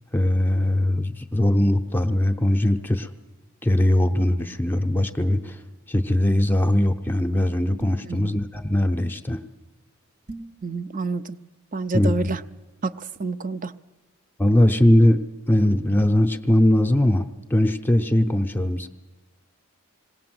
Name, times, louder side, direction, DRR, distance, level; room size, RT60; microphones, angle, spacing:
voice 1, 0.1-3.1 3.6-5.6 5.9-9.4 11.9-12.1 14.4-18.9, left 1 dB, 10° left, 8 dB, 0.7 m, -20 dB
sound 1, 7.8-8.2 10.3-10.6, right 2 dB, 90° right, 2.5 m, -39 dB
voice 2, 8.0-8.4 10.6-11.4 11.7-12.4 12.8-13.7, right 3 dB, 35° right, 13 dB, 0.5 m, -28 dB
20.5 x 17.5 x 7.7 m, 1.2 s
head